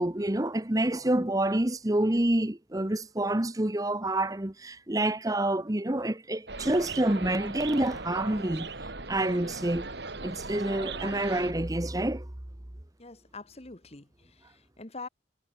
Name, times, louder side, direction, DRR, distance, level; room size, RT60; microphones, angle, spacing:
voice 1, 0.0-8.7 9.1-9.9 10.2-12.3, right 1 dB, 20° right, 1.0 m, -28 dB
sound 1, 6.5-11.5, right 3 dB, 60° right, 2.6 m, -38 dB
voice 2, 13.0-15.1, left 3 dB, 35° left, 1.4 m, -45 dB
head